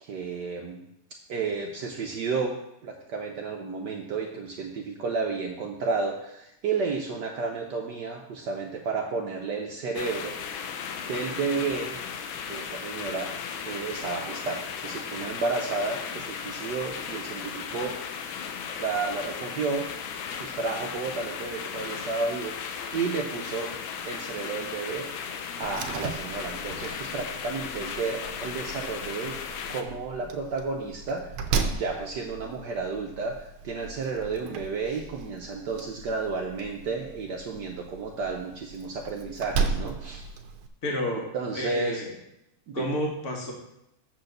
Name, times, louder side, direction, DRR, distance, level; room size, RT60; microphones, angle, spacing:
voice 1, 0.0-0.8 1.3-2.6 2.8-10.3 11.1-12.0 12.5-13.3 13.6-18.0 18.8-19.9 20.3-23.7 24.0-29.4 29.7-31.4 31.7-40.3 41.3-42.0 42.7-43.0, right 4 dB, 65° right, 1 dB, 1.2 m, -32 dB
sound 1, 9.9-29.8, left 7 dB, 80° left, 1.5 m, -36 dB
Slam, 25.6-40.7, right 5 dB, 90° right, 1.6 m, -36 dB
voice 2, 40.8-42.1 42.7-43.5, left 1 dB, 40° left, 0 dB, 1.6 m, -31 dB
7.1 x 4.4 x 6.5 m, 0.83 s
omnidirectional pair, 2.3 m